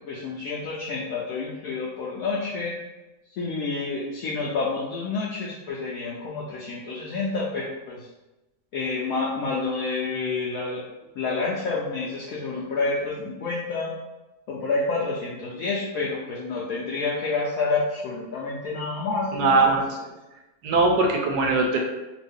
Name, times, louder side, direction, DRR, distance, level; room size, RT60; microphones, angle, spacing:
voice 1, 0.1-2.7 3.4-8.1 8.7-10.8 11.1-13.9 14.5-19.8, left 3 dB, 70° left, -5 dB, 0.9 m, -29 dB
voice 2, 19.3-19.9 20.6-21.8, right 3 dB, 80° right, 0 dB, 1.1 m, -20 dB
2.9 x 2.5 x 3.5 m, 1.0 s
omnidirectional pair, 1.7 m